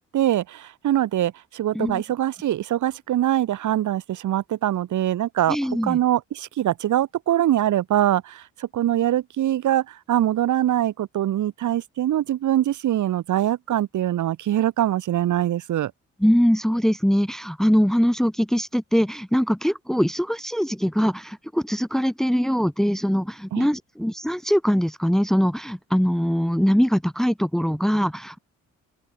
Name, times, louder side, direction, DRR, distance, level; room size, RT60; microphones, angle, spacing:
voice 1, 0.1-5.6 5.8-15.9 23.5-23.7, right 12 dB, 75° right, 6.2 m, -23 dB
voice 2, 5.5-6.0 16.2-28.4, equal, ahead, 1.4 m, -22 dB
open air
cardioid pair, 90°, 30 cm